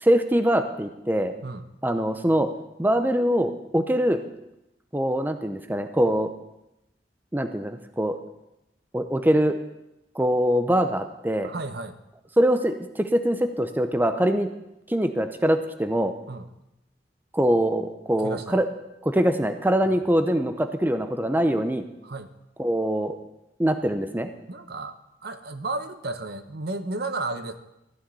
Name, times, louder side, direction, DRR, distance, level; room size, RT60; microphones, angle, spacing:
voice 1, 0.0-1.3 1.8-2.5 2.8-4.2 4.9-6.3 7.3-8.2 8.9-9.6 10.1-11.5 12.4-14.5 14.9-16.1 17.3-18.7 19.0-21.8 22.6-23.2 23.6-24.3, equal, 10° right, 8 dB, 0.7 m, -23 dB
voice 2, 11.4-12.0 16.3-16.5 18.2-18.6 19.8-20.0 22.0-22.3 24.5-24.9 25.2-27.6, right 2 dB, 65° right, 9 dB, 1.0 m, -33 dB
14.5 x 6.4 x 9.1 m, 0.89 s
head